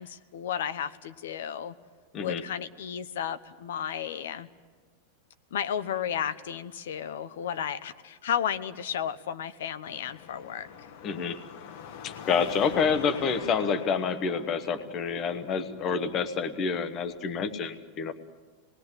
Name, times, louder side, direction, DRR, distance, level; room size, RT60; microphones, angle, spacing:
voice 1, 0.0-1.7 2.2-4.5 5.5-10.9, left 9 dB, 85° left, 11 dB, 1.0 m, -33 dB
Car passing by / Traffic noise roadway noise / Engine, 9.8-17.2, left 7 dB, 50° left, 1.3 m, -44 dB
voice 2, 11.0-11.4 12.0-18.1, left 6 dB, 25° left, 11 dB, 1.1 m, -28 dB
27.5 x 20.0 x 8.1 m, 1.5 s
supercardioid pair, 180°, 0 cm